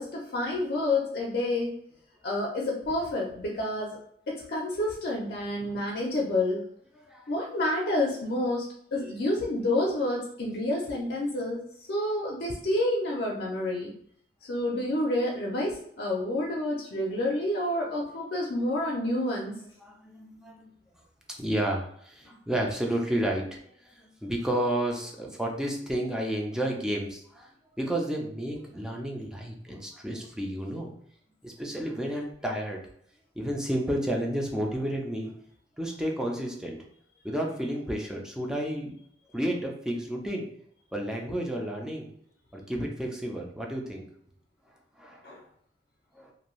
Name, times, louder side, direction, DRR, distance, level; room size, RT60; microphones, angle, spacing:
voice 1, 0.0-1.8 2.2-4.0 4.3-6.7 7.3-13.9 14.4-19.6 45.2-45.4, left 1 dB, 65° left, -3 dB, 0.5 m, -29 dB
voice 2, 6.9-7.3 19.8-20.7 21.4-30.9 31.4-32.8 33.4-35.3 35.8-36.8 37.2-38.9 39.3-40.5 40.9-42.1 42.5-44.1 45.0-45.2 46.1-46.3, right 1 dB, 5° right, 0 dB, 0.5 m, -31 dB
2.6 x 2.3 x 3.0 m, 0.65 s
head